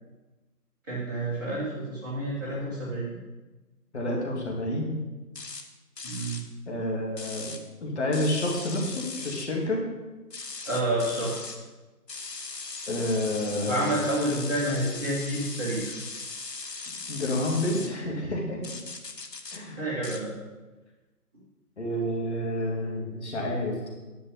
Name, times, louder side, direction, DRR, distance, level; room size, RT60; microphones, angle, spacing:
voice 1, 0.9-3.2 6.0-6.4 10.6-11.6 13.6-16.0 19.8-20.3, right 1 dB, 10° right, -10 dB, 1.5 m, -29 dB
voice 2, 3.9-5.0 6.7-9.8 12.9-14.0 17.1-18.6 19.5-19.8 21.8-23.9, left 1 dB, 45° left, -1 dB, 2.4 m, -29 dB
sound 1, 5.3-5.6 6.0-6.4 7.2-7.6 8.1-9.5 10.3-11.6 12.1-17.9 18.6-19.6 20.0-20.2, left 4 dB, 90° left, 1.3 m, -39 dB
10.0 x 9.2 x 4.0 m, 1.2 s
figure-of-eight pair, 160°, 48 cm